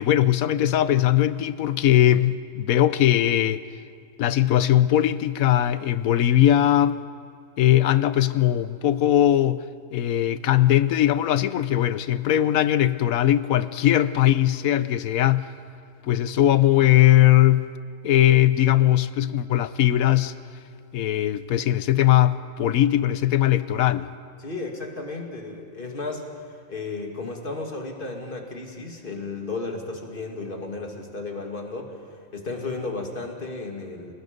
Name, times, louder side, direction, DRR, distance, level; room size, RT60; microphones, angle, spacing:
voice 1, 0.0-3.6 4.2-7.0 7.6-9.6 9.9-15.5 16.1-17.7 18.0-20.3 20.9-24.0, left 12 dB, 85° left, 14 dB, 1.2 m, -20 dB
voice 2, 24.4-32.0 32.3-34.1, left 3 dB, 40° left, 2 dB, 2.5 m, -34 dB
30.0 x 19.0 x 5.2 m, 2.3 s
omnidirectional pair, 1.4 m